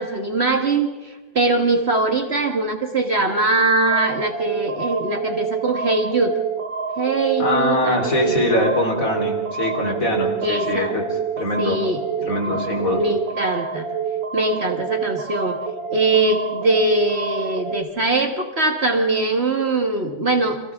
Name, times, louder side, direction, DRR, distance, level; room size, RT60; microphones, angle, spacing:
voice 1, 0.0-6.3 7.0-8.5 10.4-10.9 11.6-12.6 12.9-13.9 14.3-15.6 15.9-20.6, right 2 dB, 40° right, 4 dB, 1.6 m, -22 dB
sound 1, 3.9-17.8, right 6 dB, 60° right, 1.5 m, -27 dB
voice 2, 7.4-11.0 11.4-11.8 12.3-13.0, left 1 dB, 50° left, 1 dB, 4.1 m, -22 dB
30.0 x 25.5 x 3.6 m, 1.3 s
omnidirectional pair, 1.8 m